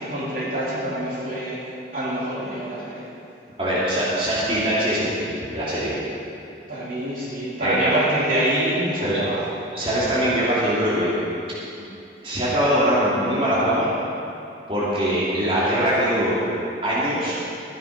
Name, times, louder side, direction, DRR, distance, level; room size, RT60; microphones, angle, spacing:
voice 1, 0.0-1.6 1.9-3.1 6.7-9.4, right 1 dB, 50° right, -8 dB, 3.1 m, -25 dB
voice 2, 3.6-5.9 7.6-7.9 9.0-9.2 9.7-11.1 11.8-11.9 12.2-13.9 14.7-16.4 16.8-17.3, equal, 30° right, -9 dB, 2.9 m, -22 dB
14.5 x 9.9 x 5.3 m, 2.6 s
head